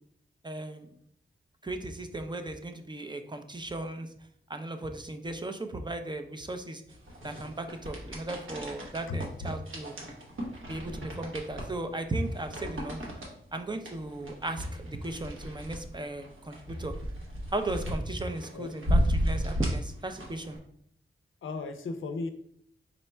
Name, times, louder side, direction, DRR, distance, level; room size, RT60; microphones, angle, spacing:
voice 1, 0.4-0.9 1.6-4.1 4.5-6.8 7.2-9.9 10.7-13.0 13.5-16.9 17.5-20.6, right 2 dB, 20° right, 7 dB, 0.4 m, -36 dB
sound 1, 6.9-20.6, equal, 85° right, 1.0 m, -34 dB
voice 2, 21.4-22.3, left 3 dB, 80° left, 7 dB, 0.5 m, -35 dB
3.9 x 2.2 x 4.2 m, 0.66 s
wide cardioid pair, 75°, 20 cm